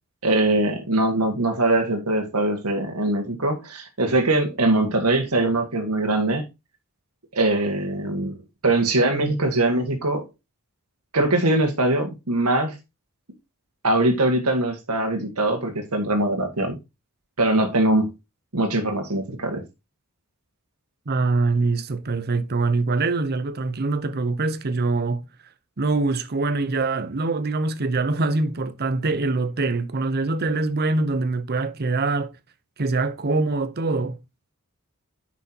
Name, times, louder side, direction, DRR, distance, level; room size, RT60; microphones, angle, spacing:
voice 1, 0.2-6.4 7.3-8.4 8.6-10.2 11.1-12.7 13.8-16.8 17.4-18.1 18.5-19.6, right 2 dB, 80° right, 1.7 m, -22 dB
voice 2, 21.1-25.2 25.8-32.3 32.8-34.2, right 3 dB, 45° right, 0.7 m, -24 dB
9.7 x 6.0 x 2.8 m
head